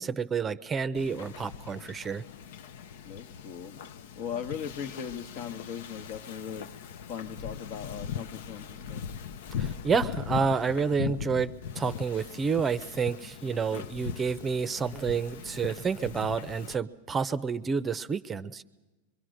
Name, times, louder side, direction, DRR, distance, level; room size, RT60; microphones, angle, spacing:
voice 1, 0.0-2.2 9.6-18.6, right 5 dB, 20° right, 14 dB, 0.6 m, -29 dB
Wind / Ocean, 1.0-16.7, left 8 dB, 70° left, 0.7 m, -40 dB
voice 2, 3.0-3.8 4.2-6.7 7.1-9.0, left 8 dB, 55° left, 10 dB, 1.2 m, -38 dB
25.0 x 22.5 x 6.4 m, 1.2 s
hypercardioid pair, 125°, 0 cm